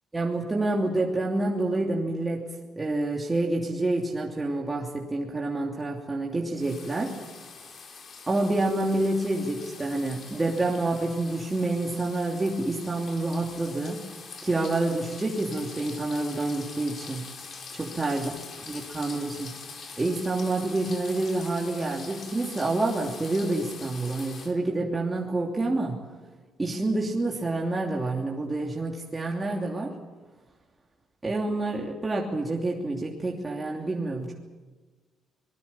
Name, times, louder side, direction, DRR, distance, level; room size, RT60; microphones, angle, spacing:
voice 1, 0.1-2.4 2.8-7.2 8.3-14.1 14.4-17.2 17.7-18.3 18.7-19.5 20.0-26.0 26.6-29.9 31.2-34.3, right 2 dB, 20° right, -2 dB, 3.0 m, -28 dB
sound 1, 6.5-24.5, left 5 dB, 45° left, 4.4 m, -44 dB
25.5 x 21.0 x 7.2 m, 1.3 s
cardioid pair, 120°, 0 cm